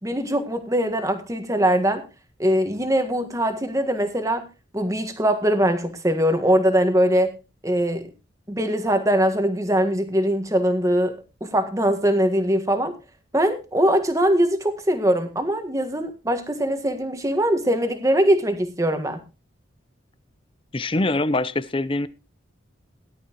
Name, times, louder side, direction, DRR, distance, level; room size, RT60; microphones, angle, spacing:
voice 1, 0.0-2.0 2.4-4.4 4.7-7.3 7.6-8.1 8.5-13.0 13.3-19.2, equal, 15° right, 1.6 m, -22 dB
voice 2, 20.7-22.1, left 2 dB, 25° left, 0.6 m, -23 dB
17.5 x 11.5 x 3.0 m
head